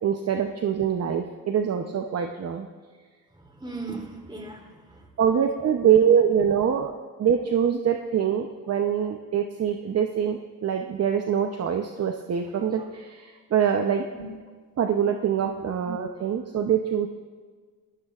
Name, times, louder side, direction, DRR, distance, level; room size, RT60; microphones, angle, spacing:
voice 1, 0.0-2.7 5.2-14.1 14.8-17.1, right 8 dB, 40° right, 4 dB, 0.8 m, -24 dB
voice 2, 3.3-5.1 12.7-12.9 14.1-14.3, right 3 dB, 10° right, 0 dB, 3.3 m, -38 dB
27.5 x 12.5 x 2.5 m, 1.5 s
cardioid pair, 95°, 38 cm